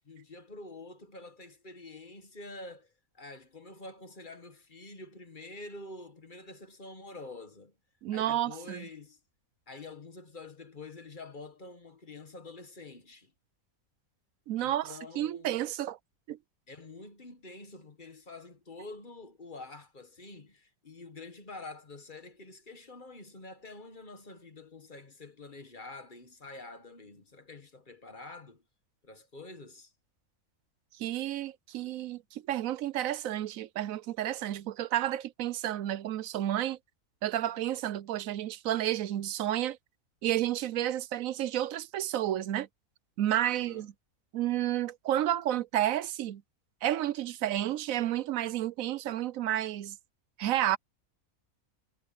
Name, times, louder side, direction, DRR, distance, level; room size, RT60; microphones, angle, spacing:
voice 1, 0.1-7.7 8.1-9.2 9.7-13.3 14.6-15.5 16.7-28.6 29.0-29.9 43.5-43.9, left 3 dB, 35° left, 1.6 m, -47 dB
voice 2, 8.0-8.8 14.5-16.0 16.3-16.4 31.0-36.8 37.2-39.8 40.2-42.7 43.2-43.9 44.3-46.4 46.8-50.0 50.4-50.8, right 12 dB, 70° right, 1.0 m, -31 dB
omnidirectional pair, 1.5 m